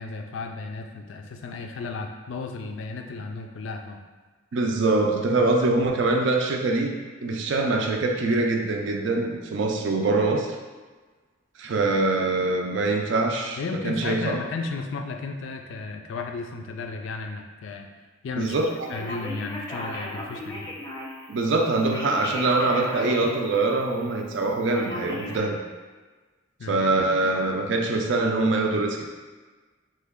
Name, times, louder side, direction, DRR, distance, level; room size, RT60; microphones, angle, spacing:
voice 1, 0.0-4.0 13.6-17.9 18.2-18.5 18.9-20.7 26.6-26.8, left 4 dB, 70° left, 4 dB, 0.3 m, -34 dB
voice 2, 4.5-6.9 7.2-10.6 11.6-13.6 13.8-14.4 18.4-19.0 21.3-25.6 26.7-29.0, right 2 dB, 65° right, 2 dB, 0.4 m, -24 dB
Telephone, 18.9-21.2 21.9-23.4 23.8-23.9 24.7-25.4, left 1 dB, 15° left, 0.5 m, -35 dB
3.2 x 2.2 x 3.5 m, 1.3 s
head